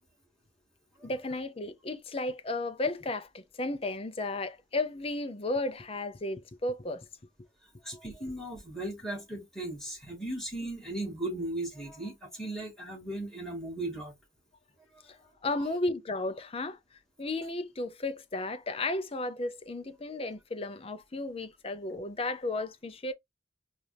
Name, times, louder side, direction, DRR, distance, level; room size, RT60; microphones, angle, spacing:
voice 1, 1.0-7.1 15.0-16.8 17.2-23.1, left 2 dB, 30° left, 0.6 m, -34 dB
voice 2, 7.8-14.1, right 1 dB, 5° left, 2.5 m, -37 dB
4.4 x 2.5 x 3.3 m
head